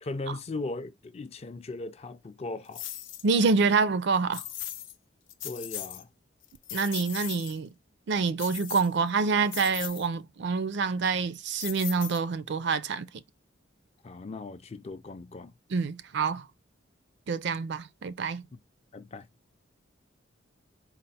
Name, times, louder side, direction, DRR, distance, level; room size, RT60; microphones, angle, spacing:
voice 1, 0.0-2.8 5.4-6.1 14.0-15.5 18.5-18.6 18.9-19.3, left 2 dB, 35° left, 0.4 m, -38 dB
sound 1, 2.7-3.3 4.3-5.0 5.3-6.0 6.4-7.6 8.4-9.1 9.5-10.1 11.6-12.5, left 13 dB, 80° left, 0.6 m, -38 dB
voice 2, 3.2-4.4 6.7-7.7 8.1-13.1 15.7-16.4 17.3-18.4, right 4 dB, 65° right, 0.4 m, -27 dB
4.2 x 2.0 x 4.1 m
head